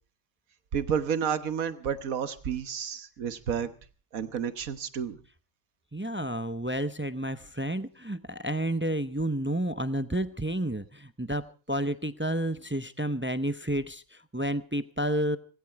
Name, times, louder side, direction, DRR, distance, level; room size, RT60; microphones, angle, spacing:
voice 1, 0.7-3.7 4.1-5.2, right 7 dB, 80° right, 12 dB, 1.6 m, -30 dB
voice 2, 5.9-15.4, right 1 dB, 15° right, 12 dB, 0.4 m, -30 dB
18.5 x 16.5 x 4.7 m, 0.39 s
omnidirectional pair, 1.4 m